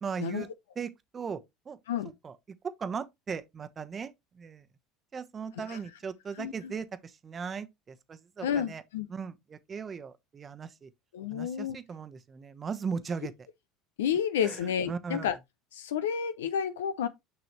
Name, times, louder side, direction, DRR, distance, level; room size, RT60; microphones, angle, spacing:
voice 1, 0.0-0.5 0.8-1.8 2.2-2.3 2.6-4.7 5.1-8.8 9.1-10.9 11.3-13.3 14.4-14.6 14.9-15.3, right 6 dB, 30° right, 0.9 m, -38 dB
voice 2, 6.4-6.7 8.4-9.1 11.1-11.8 14.0-15.4 15.7-17.1, left 8 dB, 80° left, 0.6 m, -31 dB
6.4 x 6.0 x 3.0 m
hypercardioid pair, 75°, 0 cm